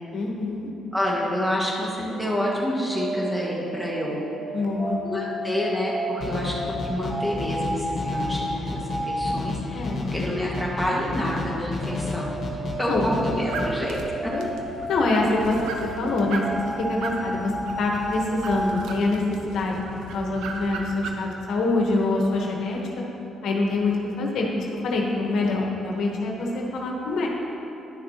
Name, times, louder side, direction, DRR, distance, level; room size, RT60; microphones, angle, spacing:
voice 1, 0.1-0.7 4.5-5.0 9.7-10.0 11.9-12.1 12.9-13.0 14.3-14.5 14.9-17.5 17.8-19.8 20.1-23.0 23.4-27.3, left 2 dB, 75° left, -1 dB, 1.0 m, -25 dB
voice 2, 0.9-4.2 5.0-9.9 10.1-12.4 12.8-14.3 16.0-16.2, equal, 5° right, -5 dB, 1.6 m, -28 dB
sound 1, 2.1-9.5 11.5-18.8, equal, 20° left, 1.4 m, -33 dB
sound 2, 6.2-13.7, left 3 dB, 50° left, 1.3 m, -32 dB
sound 3, 13.3-21.2, right 3 dB, 85° right, 0.6 m, -37 dB
10.5 x 6.4 x 2.9 m, 2.9 s
cardioid pair, 90°, 0 cm